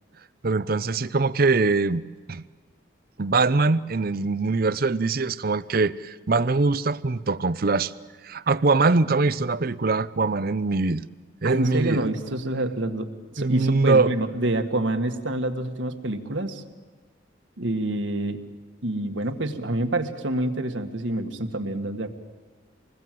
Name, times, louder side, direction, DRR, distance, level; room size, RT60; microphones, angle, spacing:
voice 1, 0.4-2.0 2.3-2.4 3.2-7.9 8.2-11.0 11.4-12.1 13.4-14.1, right 3 dB, 50° right, 0.6 m, -22 dB
voice 2, 11.4-13.1 13.3-16.6 17.6-18.4 18.8-22.1, right 1 dB, 75° right, 1.8 m, -27 dB
26.5 x 20.5 x 7.7 m
head